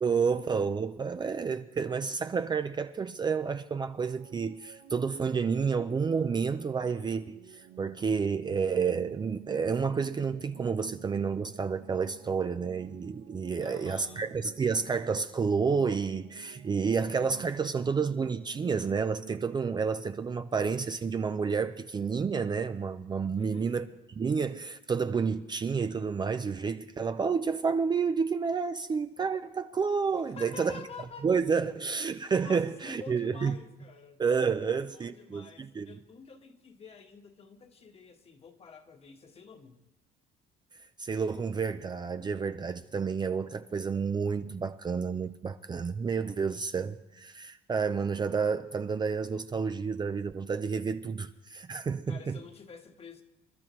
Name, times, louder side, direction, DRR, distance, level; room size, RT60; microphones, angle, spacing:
voice 1, 0.0-23.8 24.2-30.8 31.2-33.5 34.2-35.9 41.0-52.4, right 5 dB, 25° right, 0.5 m, -30 dB
sound 1, 3.6-19.9, right 13 dB, 80° right, 0.7 m, -52 dB
voice 2, 13.6-14.3 23.3-23.8 30.2-31.3 32.2-34.2 34.6-39.8 52.1-53.2, left 5 dB, 35° left, 1.4 m, -49 dB
27.5 x 12.0 x 3.1 m
cardioid pair, 110°, 17 cm